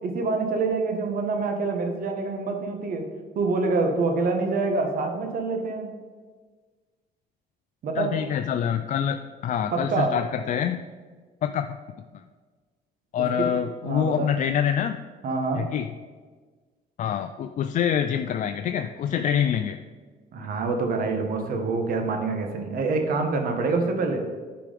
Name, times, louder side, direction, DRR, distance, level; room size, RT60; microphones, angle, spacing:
voice 1, 0.0-3.0 3.3-5.9 7.8-8.1 9.7-10.1 13.2-13.5 13.8-14.3 15.2-15.6 20.3-24.2, right 3 dB, 60° right, 4 dB, 1.4 m, -26 dB
voice 2, 7.9-10.8 11.4-11.7 12.1-12.2 13.1-15.0 15.5-15.9 17.0-19.8, left 9 dB, 50° left, 7 dB, 0.4 m, -26 dB
9.1 x 4.8 x 5.2 m, 1.4 s
cardioid pair, 110°, 17 cm